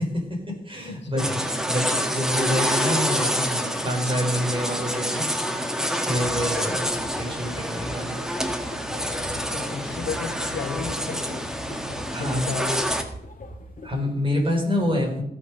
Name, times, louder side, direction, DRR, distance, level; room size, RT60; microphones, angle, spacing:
voice 1, 0.0-1.2 1.7-5.3 5.9-6.9 7.2-8.2 12.1-12.5 13.8-15.2, left 1 dB, 30° right, 0 dB, 4.9 m, -27 dB
voice 2, 1.0-1.5 6.4-6.7 9.5-11.4 12.2-12.9, left 4 dB, 85° left, 6 dB, 1.5 m, -33 dB
sound 1, 1.2-13.0, equal, 5° right, 1.7 m, -27 dB
sound 2, 6.1-13.9, equal, 45° left, 2.3 m, -41 dB
16.5 x 6.4 x 5.2 m, 0.78 s
cardioid pair, 60°, 18 cm